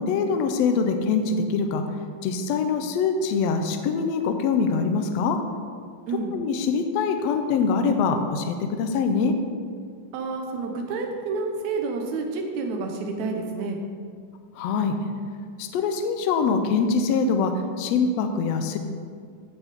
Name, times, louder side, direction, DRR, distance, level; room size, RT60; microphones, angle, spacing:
voice 1, 0.0-1.8 2.2-5.4 6.3-9.4 14.6-15.0 15.6-18.8, left 5 dB, 80° left, 6 dB, 1.5 m, -24 dB
voice 2, 10.1-13.8, right 4 dB, 65° right, 2 dB, 2.2 m, -29 dB
16.0 x 7.1 x 3.7 m, 2.1 s
omnidirectional pair, 4.0 m